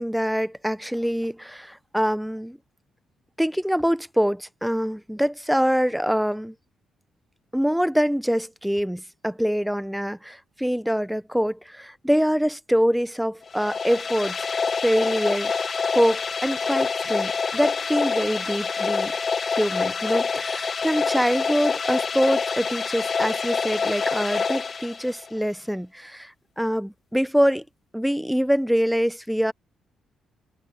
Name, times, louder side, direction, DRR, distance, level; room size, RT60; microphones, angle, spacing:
voice 1, 0.0-2.6 3.4-6.5 7.5-14.4 14.8-15.5 15.9-19.1 19.5-27.6 27.9-29.5, equal, ahead, 0.9 m, -24 dB
sound 1, 13.5-25.4, left 5 dB, 40° left, 1.9 m, -26 dB
cardioid pair, 90°, 0 cm